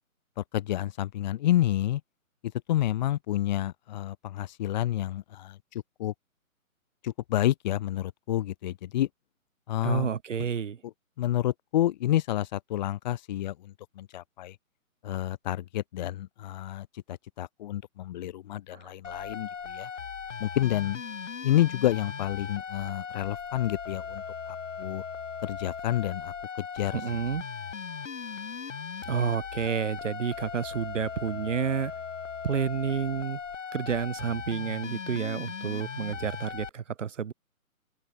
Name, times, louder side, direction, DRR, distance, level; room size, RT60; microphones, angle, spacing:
voice 1, 0.4-2.0 2.4-6.1 7.0-9.1 9.7-10.1 10.8-10.9 11.2-14.6 15.0-19.9 20.4-21.0 21.4-25.0 25.4-27.0, left 13 dB, 30° left, 2.1 m, -29 dB
voice 2, 9.8-10.8 18.7-18.9 26.9-27.4 29.0-31.9 32.4-33.4 33.7-37.3, right 7 dB, 60° right, 1.6 m, -30 dB
sound 1, 19.0-36.7, left 6 dB, 60° left, 5.4 m, -38 dB
open air
figure-of-eight pair, 140°, 42 cm